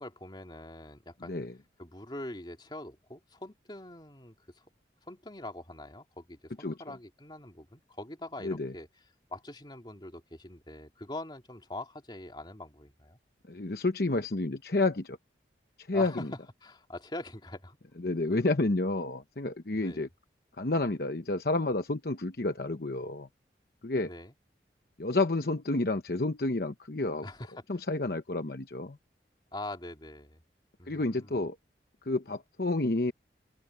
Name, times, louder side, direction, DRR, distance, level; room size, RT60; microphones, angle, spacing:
voice 1, 0.0-1.4 1.8-4.3 5.1-8.9 9.3-13.2 15.9-16.3 16.6-17.8 19.7-20.1 24.0-24.3 27.2-27.8 29.5-30.4 30.8-31.5, left 1 dB, 25° left, 2.8 m, -43 dB
voice 2, 13.5-15.2 15.8-16.3 18.0-20.1 20.6-23.3 23.8-24.1 25.0-27.3 27.7-29.0 30.9-31.6 32.0-33.1, left 2 dB, 55° left, 1.0 m, -30 dB
open air
head